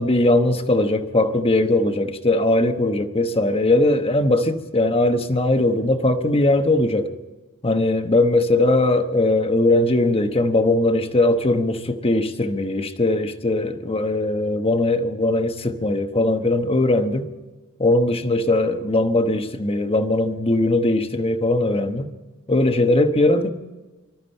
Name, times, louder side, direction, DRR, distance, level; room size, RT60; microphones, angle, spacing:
voice 1, 0.0-7.1 7.6-17.3 17.8-22.1 22.5-23.5, left 2 dB, 25° left, 1.1 m, -20 dB
24.5 x 13.5 x 4.4 m
head